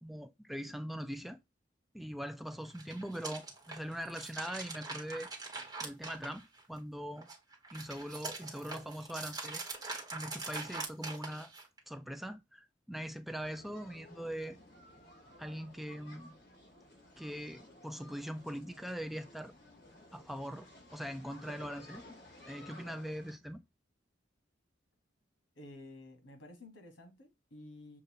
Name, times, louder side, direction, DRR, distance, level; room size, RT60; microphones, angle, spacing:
voice 1, 0.0-1.4 1.9-5.3 5.8-6.4 6.7-7.3 7.7-11.5 11.9-14.6 15.4-16.3 17.2-19.5 20.1-22.0 22.5-23.6, equal, ahead, 0.3 m, -42 dB
sound 1, 2.6-6.8 7.2-11.8, right 3 dB, 20° right, 1.3 m, -43 dB
sound 2, 13.4-23.3, left 1 dB, 50° left, 2.8 m, -56 dB
voice 2, 25.6-28.0, left 1 dB, 80° left, 1.4 m, -52 dB
6.5 x 2.5 x 2.8 m
head